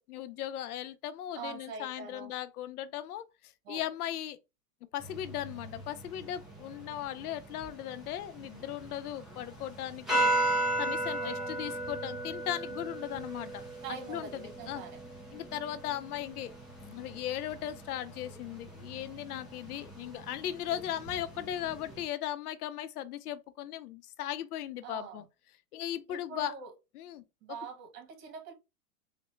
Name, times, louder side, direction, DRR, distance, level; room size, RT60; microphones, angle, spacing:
voice 1, 0.0-4.4 4.9-10.3 10.8-13.6 14.1-14.8 15.3-16.5 16.8-25.2 25.7-26.5 26.9-27.2, left 11 dB, 75° left, 0.7 m, -37 dB
voice 2, 1.3-2.3 3.6-3.8 11.1-11.6 13.8-15.0 24.8-25.3 26.1-26.7 27.4-28.5, right 6 dB, 60° right, 1.6 m, -44 dB
sound 1, 5.0-22.0, right 2 dB, ahead, 0.3 m, -37 dB
4.0 x 2.2 x 3.1 m
hypercardioid pair, 135°, 45 cm